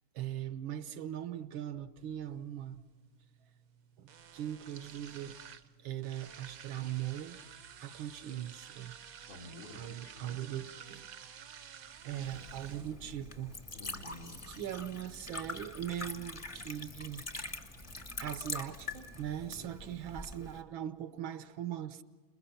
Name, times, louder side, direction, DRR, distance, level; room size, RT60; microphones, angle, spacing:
voice 1, 0.1-2.8 4.0-5.4 5.8-7.4 7.8-8.9 9.7-11.1 12.0-13.5 14.5-17.2 18.2-22.0, right 11 dB, 80° right, 1.6 m, -40 dB
sound 1, 2.2-20.2, right 8 dB, 60° right, 1.0 m, -54 dB
voice 2, 9.3-10.5 13.7-14.6 19.4-19.7, left 1 dB, 80° left, 3.7 m, -51 dB
Liquid, 12.1-20.6, left 2 dB, 20° left, 0.9 m, -44 dB
27.5 x 21.5 x 5.8 m
omnidirectional pair, 2.2 m